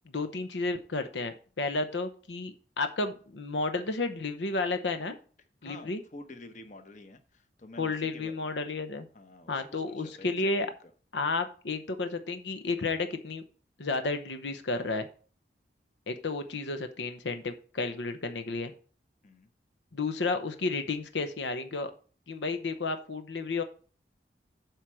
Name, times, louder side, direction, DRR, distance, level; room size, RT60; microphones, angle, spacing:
voice 1, 0.1-5.2 5.6-6.0 7.8-9.1 9.5-10.7 11.1-13.4 13.8-15.1 16.1-18.7 19.9-21.9 22.3-23.6, left 3 dB, 90° left, 9 dB, 0.8 m, -32 dB
voice 2, 5.6-8.3 9.1-10.9 19.2-19.5, left 2 dB, 45° left, 8 dB, 0.9 m, -49 dB
8.0 x 4.5 x 6.3 m, 0.40 s
head